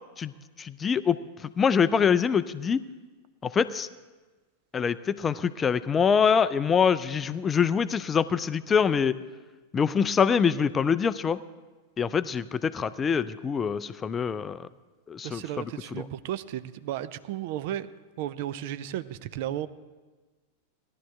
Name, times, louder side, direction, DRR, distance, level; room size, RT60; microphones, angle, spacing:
voice 1, 0.6-1.2 1.6-2.8 3.4-3.9 4.7-9.2 9.7-11.4 12.0-14.7 15.1-15.4, left 6 dB, 20° left, 15 dB, 0.4 m, -24 dB
voice 2, 15.2-17.9 18.2-19.7, right 12 dB, 50° right, 14 dB, 0.4 m, -34 dB
17.5 x 12.0 x 3.4 m, 1.3 s
figure-of-eight pair, 90°, 0 cm